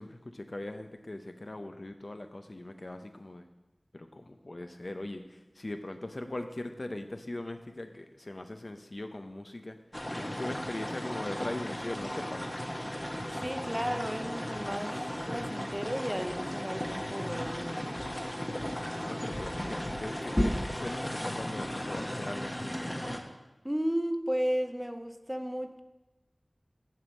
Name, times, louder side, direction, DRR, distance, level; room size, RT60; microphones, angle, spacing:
voice 1, 0.0-3.5 3.9-9.8 10.2-12.6 19.1-22.7, left 1 dB, 55° left, 7 dB, 0.7 m, -40 dB
sound 1, 9.9-23.2, equal, 20° left, 1.0 m, -35 dB
voice 2, 13.4-15.0 15.2-17.8 23.6-25.8, equal, 10° right, 8 dB, 0.6 m, -33 dB
7.5 x 5.2 x 7.5 m, 1.1 s
wide cardioid pair, 55°, 0 cm